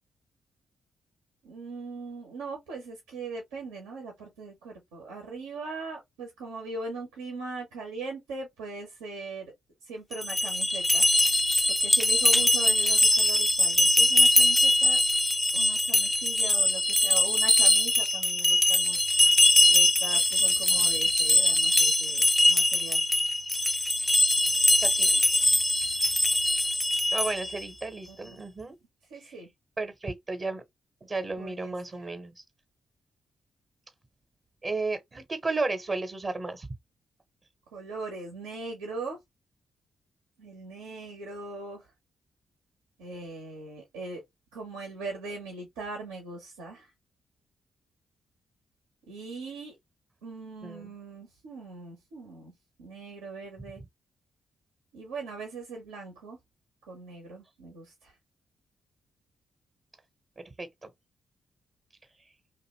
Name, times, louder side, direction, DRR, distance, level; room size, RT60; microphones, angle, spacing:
voice 1, 1.4-9.5 9.8-11.1 11.8-15.0 15.5-19.0 19.3-19.4 19.7-23.1 28.1-28.4 29.1-29.5 31.4-31.7 37.7-39.2 40.4-41.9 43.0-44.2 44.5-46.9 49.1-49.8 50.2-52.5 52.8-53.8 54.9-56.4 56.9-58.2, right 3 dB, 85° right, 0.8 m, -40 dB
sound 1, 10.1-27.6, left 1 dB, 10° left, 0.3 m, -22 dB
voice 2, 24.8-25.2 27.1-28.8 29.1-29.4 29.8-30.6 31.0-32.4 34.6-36.7 50.6-50.9 60.4-60.9, right 3 dB, 40° right, 0.8 m, -33 dB
2.6 x 2.4 x 3.0 m
hypercardioid pair, 40°, 0 cm